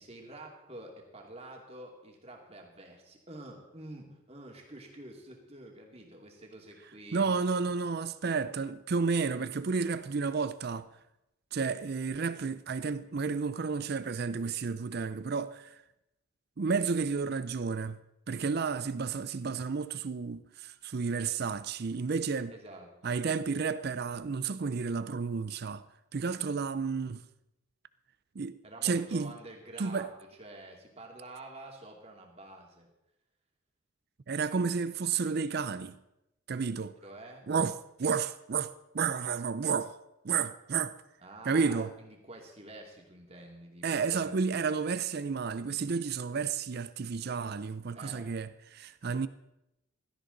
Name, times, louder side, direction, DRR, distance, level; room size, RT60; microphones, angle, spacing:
voice 1, 0.0-7.6 22.5-23.2 28.6-30.1 30.4-32.9 37.0-37.5 41.2-44.4 47.9-48.3, right 1 dB, 30° right, 2.3 m, -48 dB
voice 2, 7.1-10.9 11.5-15.7 16.6-18.0 18.3-22.5 23.0-25.8 26.1-27.2 28.4-29.3 29.8-30.1 34.3-36.0 36.5-37.0 37.5-40.0 40.2-40.9 41.5-41.9 43.8-49.3, right 5 dB, 50° right, 0.5 m, -31 dB
16.5 x 13.0 x 3.9 m
head